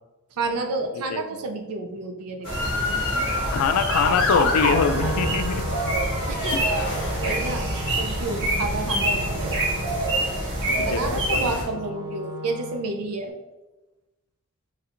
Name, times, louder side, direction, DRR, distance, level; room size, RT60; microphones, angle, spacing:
voice 1, 0.3-2.7 6.3-9.6 10.8-13.3, right 3 dB, 85° right, 5 dB, 0.5 m, -30 dB
Motor vehicle (road) / Siren, 2.4-7.7 8.3-8.8, left 2 dB, 60° left, 0.7 m, -28 dB
sound 1, 2.4-11.6, right 1 dB, 60° right, 1.4 m, -26 dB
voice 2, 3.5-5.6 6.5-6.6 10.6-11.6, left 6 dB, 85° left, 10 dB, 0.3 m, -24 dB
Wind instrument woodwind instrument, 4.8-13.0, right 1 dB, 20° right, 0.7 m, -38 dB
3.3 x 2.5 x 4.3 m, 1.1 s
head